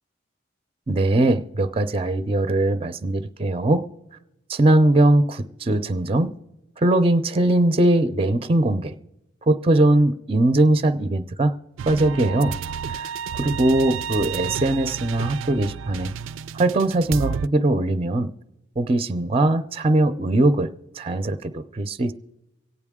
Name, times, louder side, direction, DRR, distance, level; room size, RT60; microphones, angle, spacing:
voice 1, 0.9-3.8 4.5-6.3 6.8-8.9 9.4-11.5 11.9-12.6 12.9-16.1 16.5-18.3 18.8-22.1, right 1 dB, 30° right, 11 dB, 0.5 m, -20 dB
sound 1, 11.8-17.5, right 7 dB, 85° right, 0.4 m, -31 dB
24.5 x 9.0 x 3.6 m, 0.95 s
head